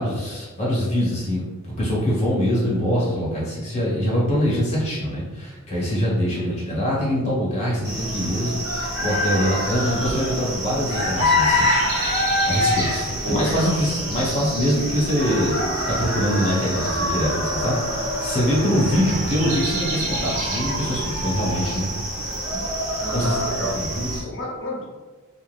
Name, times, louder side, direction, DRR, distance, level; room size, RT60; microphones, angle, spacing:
voice 1, 0.0-12.1 12.5-21.9 23.1-24.3, equal, 30° left, -7 dB, 1.1 m, -24 dB
sound 1, 7.8-24.2, left 1 dB, 80° right, 0.9 m, -25 dB
voice 2, 13.2-13.7 18.9-19.0 23.0-23.7 24.2-24.8, left 1 dB, 55° left, -3 dB, 0.7 m, -30 dB
Wind instrument woodwind instrument, 13.3-22.0, right 2 dB, 35° right, 0.7 m, -40 dB
2.5 x 2.3 x 3.3 m, 1.3 s
head